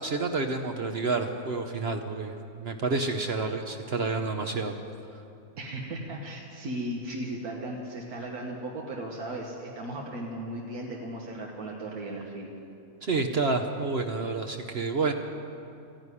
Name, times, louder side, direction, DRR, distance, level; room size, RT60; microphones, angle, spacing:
voice 1, 0.0-4.7 13.0-15.1, right 3 dB, 50° right, 5 dB, 0.9 m, -29 dB
voice 2, 5.6-12.5, right 1 dB, 80° right, -1 dB, 1.8 m, -36 dB
14.5 x 10.5 x 9.8 m, 2.6 s
omnidirectional pair, 1.6 m